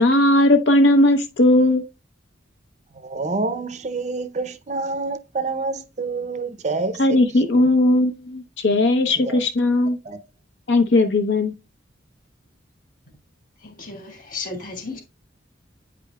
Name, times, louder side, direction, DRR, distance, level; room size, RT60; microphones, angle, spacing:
voice 1, 0.0-1.8 7.0-10.0 10.7-11.5, left 1 dB, 70° left, 0.7 m, -17 dB
voice 2, 3.0-7.0 9.2-9.4 10.1-10.2, right 3 dB, 40° right, 0.5 m, -27 dB
voice 3, 13.6-15.0, left 3 dB, 45° left, 2.2 m, -34 dB
8.8 x 5.2 x 2.2 m
head